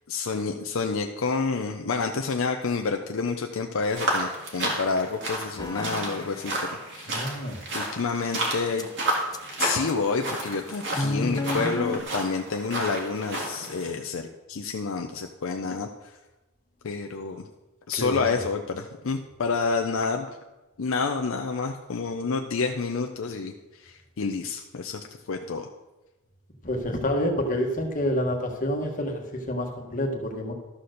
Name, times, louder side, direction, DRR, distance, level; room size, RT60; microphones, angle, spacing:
voice 1, 0.1-7.2 7.7-8.9 9.6-15.9 16.8-17.4 17.9-20.3 20.8-23.5 23.8-25.7, left 4 dB, 65° left, 4 dB, 0.6 m, -29 dB
sound 1, 3.9-13.9, right 1 dB, 55° right, 2.1 m, -31 dB
sound 2, 5.6-6.5 8.8-8.9 9.3-9.4 9.9-10.0 10.9-12.0, left 2 dB, 15° left, 0.6 m, -30 dB
voice 2, 7.1-7.6 18.0-18.4 26.6-30.5, equal, 40° left, 1 dB, 1.4 m, -28 dB
12.5 x 4.3 x 6.5 m, 1.1 s
head